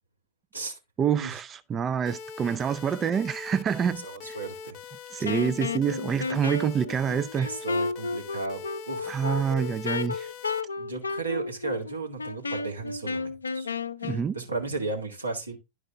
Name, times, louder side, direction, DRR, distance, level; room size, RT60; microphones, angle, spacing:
voice 1, 1.0-4.4 5.1-7.5 9.1-10.3 14.0-14.4, right 7 dB, 25° right, 0.3 m, -27 dB
sound 1, 2.1-10.6, left 6 dB, 40° left, 0.7 m, -43 dB
voice 2, 4.0-4.8 5.2-5.3 7.4-9.2 10.8-13.7 14.0-15.6, right 3 dB, 80° right, 2.0 m, -35 dB
Wind instrument woodwind instrument, 5.2-14.2, left 4 dB, 75° left, 0.5 m, -32 dB
11.0 x 4.7 x 3.6 m
figure-of-eight pair, 90°, 0 cm